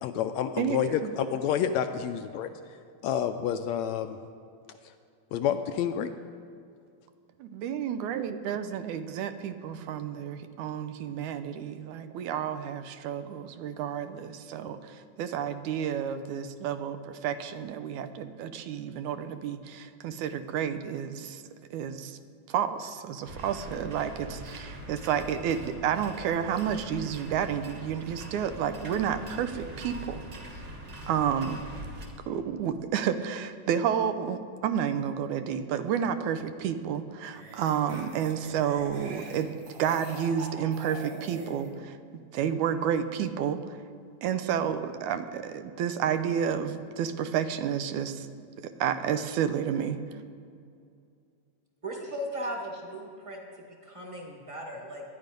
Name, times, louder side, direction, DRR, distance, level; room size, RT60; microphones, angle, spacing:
voice 1, 0.0-2.5 3.0-4.2 5.3-6.1, left 9 dB, 75° left, 8 dB, 1.8 m, -29 dB
voice 2, 0.6-1.1 7.4-21.4 21.7-22.2 22.5-30.2 31.1-31.6 32.3-39.5 39.8-43.6 44.2-48.3 48.6-50.0, right 8 dB, 85° right, 10 dB, 2.2 m, -30 dB
sound 1, 23.2-32.1, right 1 dB, 35° right, 2.1 m, -43 dB
sound 2, 36.2-36.4 37.2-41.7, right 2 dB, 70° right, 3.5 m, -44 dB
voice 3, 51.8-53.5 53.8-55.0, equal, 15° right, 0 dB, 1.3 m, -37 dB
22.5 x 9.8 x 5.3 m, 2.4 s
omnidirectional pair, 3.4 m